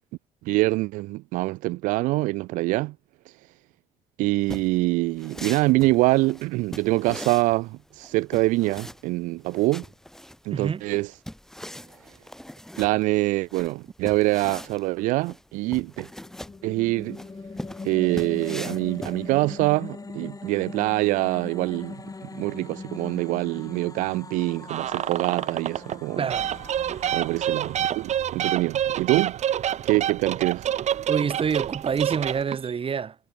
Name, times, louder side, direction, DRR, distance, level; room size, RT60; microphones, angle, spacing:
voice 1, 0.4-2.9 4.2-9.9 10.4-11.1 12.8-16.1 16.6-17.2 17.8-22.0 22.3-26.2 27.1-29.4 29.8-30.7, right 20 dB, 80° right, 1.3 m, -25 dB
sound 1, 4.4-19.7, equal, 5° left, 2.2 m, -41 dB
voice 2, 10.5-10.8 26.2-26.5 31.1-33.2, right 6 dB, 45° right, 3.6 m, -27 dB
sound 2, 15.8-29.2, left 3 dB, 25° left, 7.8 m, -41 dB
sound 3, 24.7-26.0 26.3-32.7, right 10 dB, 60° right, 2.3 m, -28 dB
supercardioid pair, 65°, 13 cm